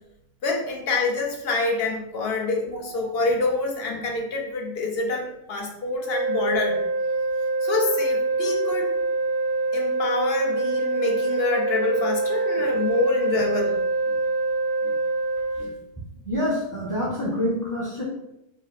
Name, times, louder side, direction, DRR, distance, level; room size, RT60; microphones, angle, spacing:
voice 1, 0.4-6.8 7.6-8.9 9.7-13.8 14.8-14.9 15.6-15.7, left 3 dB, 50° left, 1 dB, 0.8 m, -26 dB
voice 2, 2.7-3.1 16.2-18.0, left 1 dB, 15° left, -5 dB, 0.8 m, -27 dB
sound 1, 6.0-15.6, right 3 dB, 90° left, 1.3 m, -25 dB
4.9 x 2.0 x 4.1 m, 0.85 s
omnidirectional pair, 1.6 m